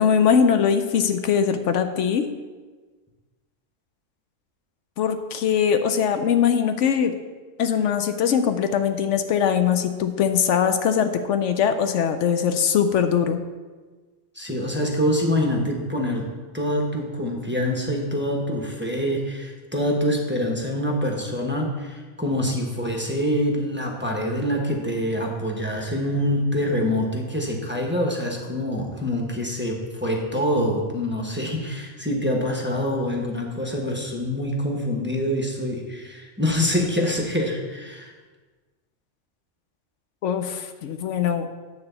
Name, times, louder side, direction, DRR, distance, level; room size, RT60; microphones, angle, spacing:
voice 1, 0.0-2.3 5.0-7.1 7.6-13.4 40.2-41.5, left 7 dB, 75° left, 8 dB, 0.9 m, -21 dB
voice 2, 14.3-38.1, equal, 10° right, -1 dB, 1.0 m, -25 dB
9.6 x 4.1 x 6.8 m, 1.3 s
omnidirectional pair, 1.3 m